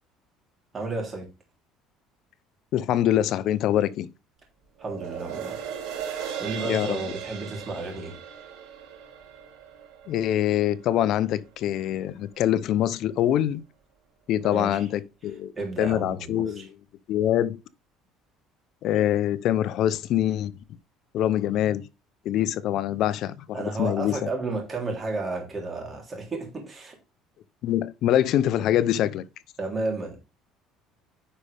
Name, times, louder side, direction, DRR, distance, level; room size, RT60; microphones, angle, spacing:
voice 1, 0.7-1.3 4.8-5.6 6.1-8.2 14.4-14.8 15.5-16.6 23.5-27.0 29.6-30.2, right 3 dB, 25° right, 3.4 m, -32 dB
voice 2, 2.7-4.1 6.6-7.0 10.1-13.6 14.3-15.5 15.8-16.7 17.1-17.6 18.8-20.5 21.1-21.8 22.2-24.3 27.6-29.3, left 11 dB, 60° left, 0.7 m, -24 dB
sound 1, 4.8-11.4 11.8-11.9, right 8 dB, 85° right, 5.1 m, -37 dB
9.8 x 5.5 x 3.4 m
cardioid pair, 130°, 0 cm